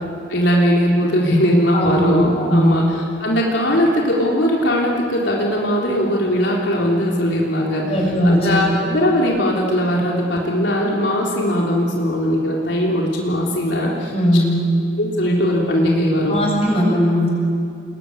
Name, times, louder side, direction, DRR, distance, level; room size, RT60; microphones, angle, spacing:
voice 1, 0.3-2.8 3.2-8.0 8.2-14.1 15.0-16.4, equal, 75° left, -3 dB, 3.6 m, -19 dB
voice 2, 1.7-2.0 2.4-2.8 7.8-8.6 14.1-14.6 16.3-17.3, equal, 35° left, -1 dB, 7.9 m, -18 dB
29.0 x 21.5 x 9.6 m, 2.4 s
head